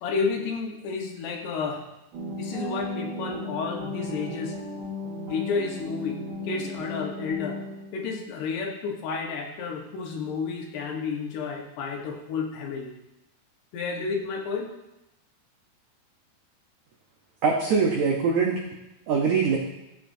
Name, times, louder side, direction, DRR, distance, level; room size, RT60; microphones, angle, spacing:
voice 1, 0.0-1.8 2.4-4.5 5.3-7.6 7.9-12.9 13.7-14.7, left 5 dB, 80° left, 1 dB, 3.3 m, -31 dB
sound 1, 2.1-8.0, left 1 dB, 55° right, 3.8 m, -35 dB
voice 2, 17.4-18.6 19.1-19.6, right 5 dB, 90° right, 0 dB, 1.6 m, -22 dB
14.5 x 8.2 x 2.7 m, 0.89 s
omnidirectional pair, 4.7 m